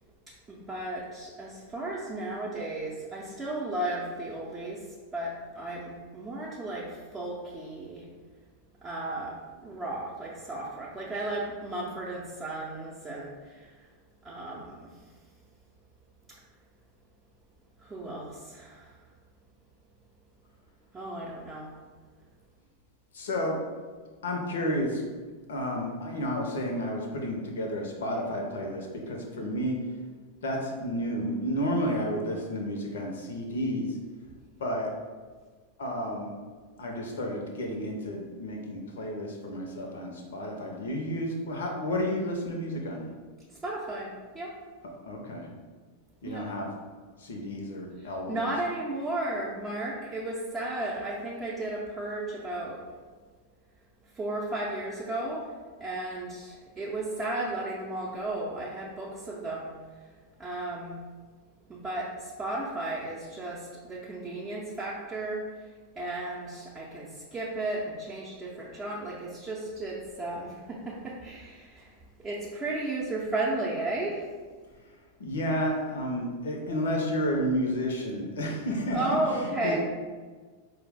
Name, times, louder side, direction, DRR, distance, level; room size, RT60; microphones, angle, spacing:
voice 1, 0.5-4.8 5.1-8.1 8.8-13.7 14.2-14.9 17.8-18.9 20.9-21.7 43.5-44.5 46.2-46.5 48.0-52.8 54.1-55.5 55.8-59.7 60.0-60.1 60.4-61.0 61.7-65.4 66.0-74.3 78.9-79.8, right 2 dB, 20° right, -6 dB, 0.5 m, -34 dB
voice 2, 23.1-23.6 24.2-25.0 25.5-29.8 30.4-33.9 34.6-34.9 35.8-36.3 36.8-43.1 45.1-45.5 46.2-46.7 47.2-48.5 75.2-79.0 79.3-79.8, equal, 60° left, 1 dB, 0.6 m, -31 dB
4.4 x 2.0 x 3.4 m, 1.5 s
figure-of-eight pair, 90°, 0 cm